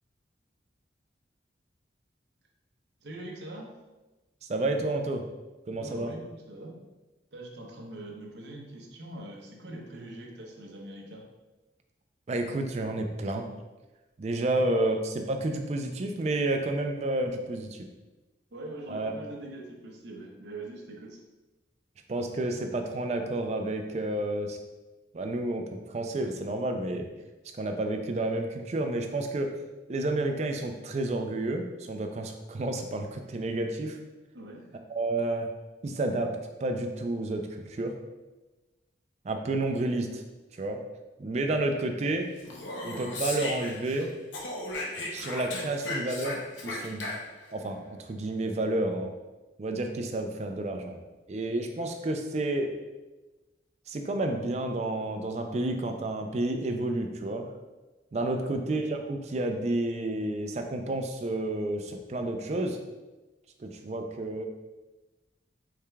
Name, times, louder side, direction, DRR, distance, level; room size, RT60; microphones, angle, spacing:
voice 1, 3.0-3.7 5.7-6.7 7.3-11.2 18.5-21.2 34.3-34.7 58.4-58.5, right 1 dB, 65° right, 0 dB, 0.7 m, -43 dB
voice 2, 4.4-5.2 5.7-6.1 12.3-13.5 14.2-17.9 18.9-19.1 22.1-24.6 25.1-27.1 27.6-29.5 29.9-34.0 34.9-35.5 35.8-37.9 39.2-40.2 40.5-40.8 41.2-42.3 42.8-44.1 45.1-47.1 47.5-49.1 49.6-51.0 51.3-52.7 53.9-57.5 58.1-62.8 63.6-64.4, right 2 dB, 35° right, 4 dB, 0.3 m, -30 dB
Speech, 42.4-44.0 44.3-47.5, left 2 dB, 85° left, 0.7 m, -36 dB
4.8 x 3.4 x 2.2 m, 1.1 s
head